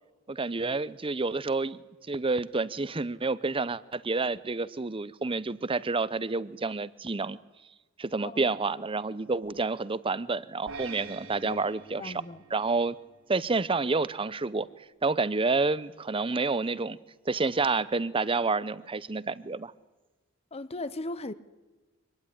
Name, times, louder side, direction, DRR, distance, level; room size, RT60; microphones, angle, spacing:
voice 1, 0.3-1.8 2.1-7.4 8.0-12.1 12.5-12.9 13.3-14.7 15.0-17.0 17.3-19.7, right 3 dB, 25° right, 0.7 m, -29 dB
voice 2, 8.2-8.6 11.4-11.6 12.0-12.4 20.5-21.3, left 2 dB, 30° left, 0.8 m, -37 dB
sound 1, 10.7-13.1, right 5 dB, 75° right, 3.6 m, -45 dB
24.5 x 18.5 x 9.9 m
head